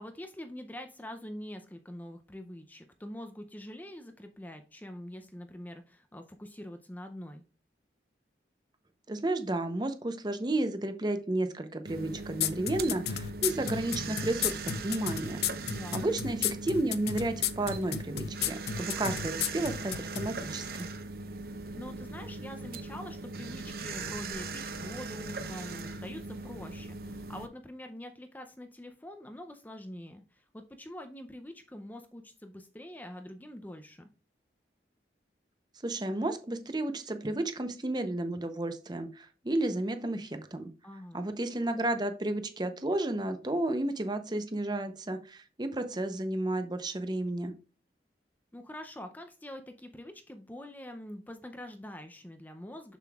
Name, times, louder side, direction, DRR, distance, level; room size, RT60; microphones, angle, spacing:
voice 1, 0.0-7.4 15.7-16.2 21.7-34.1 40.8-41.2 48.5-53.0, left 1 dB, 10° left, 6 dB, 0.5 m, -45 dB
voice 2, 9.1-15.4 15.9-20.9 35.8-40.7 41.1-47.5, right 1 dB, 25° right, 8 dB, 0.7 m, -32 dB
sound 1, 11.8-27.5, right 3 dB, 55° right, 0.8 m, -39 dB
sound 2, 12.4-20.3, left 10 dB, 65° left, 0.5 m, -32 dB
6.8 x 6.6 x 2.3 m, 0.35 s
head